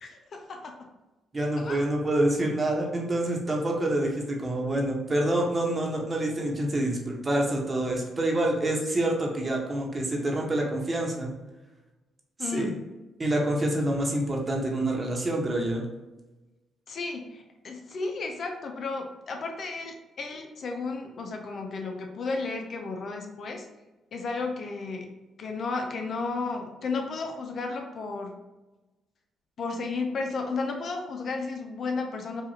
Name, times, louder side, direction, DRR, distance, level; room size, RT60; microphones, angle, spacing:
voice 1, 0.0-0.9 1.6-1.9 12.4-12.7 16.9-23.7 24.1-25.1 25.4-28.3 29.6-32.4, left 3 dB, 55° left, 3 dB, 0.6 m, -33 dB
voice 2, 1.3-11.3 12.4-12.7 13.2-15.8, right 1 dB, 30° right, -1 dB, 1.1 m, -27 dB
4.8 x 2.5 x 2.8 m, 1.1 s
supercardioid pair, 55°, 0 cm